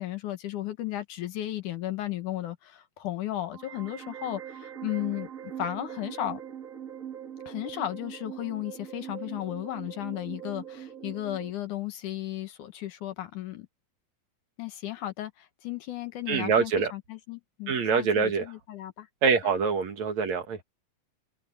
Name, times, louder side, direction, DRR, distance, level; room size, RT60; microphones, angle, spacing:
voice 1, 0.0-6.4 7.5-13.7 14.6-19.1 19.4-19.6, left 13 dB, 70° left, 2.6 m, -35 dB
sound 1, 3.5-11.5, right 9 dB, 40° right, 1.2 m, -41 dB
voice 2, 16.3-16.9 17.7-18.5 19.2-20.6, right 5 dB, 55° right, 3.1 m, -25 dB
omnidirectional pair, 4.0 m